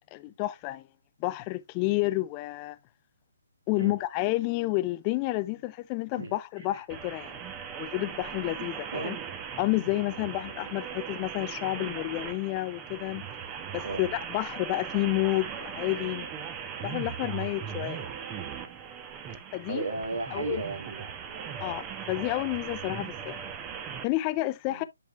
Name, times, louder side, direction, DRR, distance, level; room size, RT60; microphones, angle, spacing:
voice 1, 0.1-0.9 1.2-2.8 3.7-7.4 7.8-9.2 9.6-13.2 13.7-16.3 16.8-18.1 19.5-19.9 20.3-20.6 21.6-23.4 24.0-24.8, left 19 dB, 25° left, 0.4 m, -30 dB
sound 1, 6.9-24.0, right 7 dB, 20° right, 0.9 m, -39 dB
voice 2, 19.7-21.5 24.7-24.9, right 3 dB, 65° right, 2.8 m, -35 dB
10.0 x 4.9 x 2.4 m
figure-of-eight pair, 145°, 0 cm